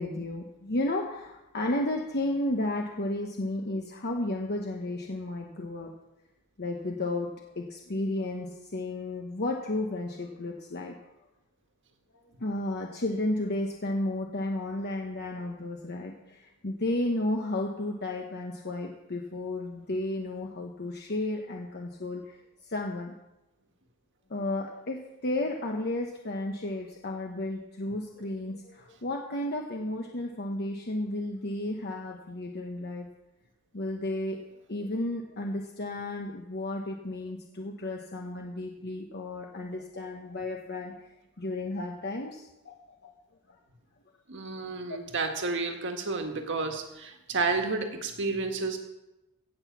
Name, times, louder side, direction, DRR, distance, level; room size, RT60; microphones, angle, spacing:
voice 1, 0.0-5.9 6.6-7.3 7.5-10.9 12.1-22.4 22.6-23.1 24.3-33.1 33.7-34.4 34.7-40.9 41.4-43.1 44.9-45.0, left 1 dB, 50° left, 1 dB, 1.1 m, -33 dB
voice 2, 44.3-48.8, right 3 dB, 60° right, 4 dB, 1.8 m, -31 dB
17.0 x 6.0 x 7.4 m, 0.95 s
head